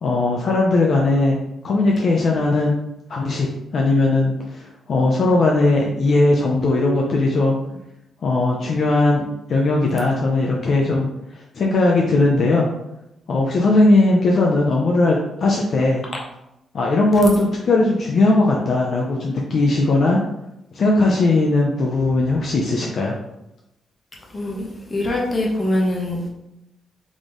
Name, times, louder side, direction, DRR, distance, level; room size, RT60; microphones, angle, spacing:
voice 1, 0.0-1.4 1.6-2.8 3.1-3.5 3.7-7.6 8.2-11.1 11.5-12.7 13.3-16.0 16.7-20.2 20.7-23.1, left 2 dB, 55° left, -1 dB, 0.6 m, -18 dB
voice 2, 24.3-26.3, left 1 dB, 25° left, -2 dB, 1.2 m, -23 dB
4.1 x 3.1 x 3.8 m, 0.87 s
cardioid pair, 110°, 0 cm